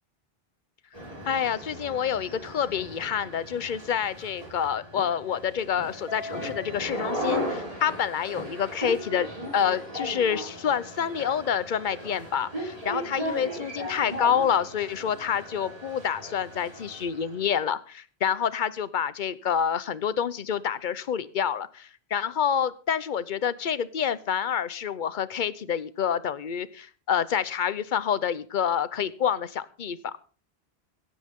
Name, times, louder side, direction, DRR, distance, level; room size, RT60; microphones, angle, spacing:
sound 1, 0.9-17.5, equal, 35° right, 6.4 m, -37 dB
voice 1, 1.3-9.3 9.5-30.1, left 8 dB, 50° left, 16 dB, 0.9 m, -28 dB
16.5 x 14.5 x 3.7 m, 0.40 s
omnidirectional pair, 1.0 m